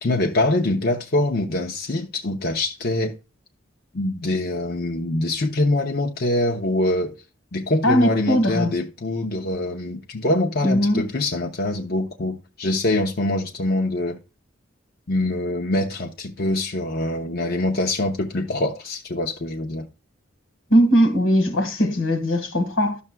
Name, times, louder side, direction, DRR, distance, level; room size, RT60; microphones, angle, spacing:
voice 1, 0.0-3.1 3.9-7.2 7.5-14.2 15.1-19.9, left 2 dB, 50° left, 0.7 m, -24 dB
voice 2, 7.8-8.8 10.6-11.1 20.7-23.0, equal, 85° left, 1.6 m, -19 dB
12.0 x 7.0 x 2.2 m
head